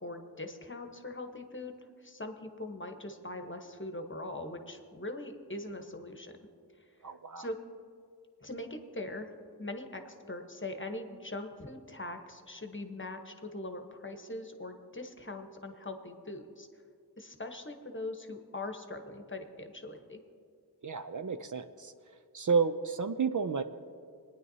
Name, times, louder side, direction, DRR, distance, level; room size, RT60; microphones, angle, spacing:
voice 1, 0.0-1.7 2.0-6.3 7.4-7.6 8.4-9.3 9.6-16.7 17.2-20.2, left 2 dB, 30° left, 5 dB, 1.0 m, -41 dB
voice 2, 7.0-7.5 20.8-21.9 22.3-23.6, right 5 dB, 50° right, 9 dB, 0.5 m, -31 dB
21.0 x 9.7 x 2.7 m, 2.3 s
wide cardioid pair, 45°, 40 cm